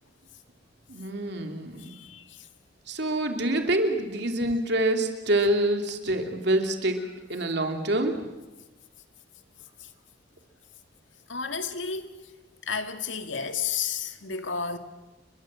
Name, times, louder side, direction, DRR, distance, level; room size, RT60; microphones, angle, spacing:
voice 1, 0.9-1.9 2.9-7.0 7.3-8.1, right 1 dB, 65° right, 3.0 m, -26 dB
voice 2, 1.8-2.5 9.8-9.9 11.3-12.1 12.6-14.8, left 6 dB, 90° left, 2.1 m, -32 dB
30.0 x 23.0 x 7.6 m
head